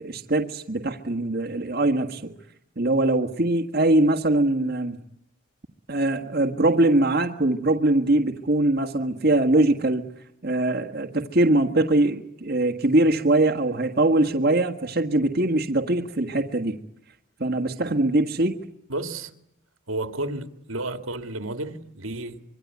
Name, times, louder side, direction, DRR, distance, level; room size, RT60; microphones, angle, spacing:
voice 1, 0.0-2.2 2.8-5.0 5.9-10.0 10.4-16.8 17.4-18.6, right 2 dB, 50° right, 1.6 m, -22 dB
voice 2, 18.9-19.3 19.9-22.4, right 2 dB, 75° right, 2.2 m, -32 dB
26.0 x 23.5 x 9.5 m
head